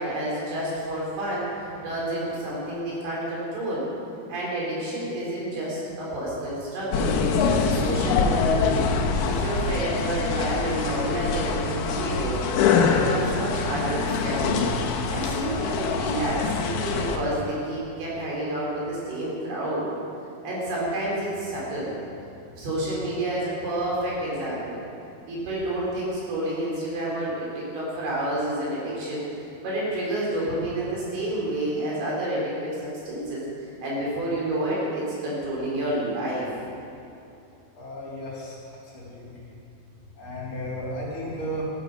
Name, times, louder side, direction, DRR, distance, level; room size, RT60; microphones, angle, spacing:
voice 1, 0.0-3.9 4.3-7.1 7.5-8.8 9.2-14.7 15.1-19.9 20.4-21.9 22.6-24.8 25.3-29.2 29.6-33.4 33.8-36.5, right 1 dB, 75° right, -5 dB, 5.8 m, -29 dB
sound 1, 6.9-17.2, left 5 dB, 85° left, 2.9 m, -24 dB
voice 2, 37.8-38.6 38.8-39.3 40.2-41.7, equal, 40° left, -6 dB, 4.3 m, -34 dB
14.0 x 11.5 x 6.6 m, 2.7 s
omnidirectional pair, 4.5 m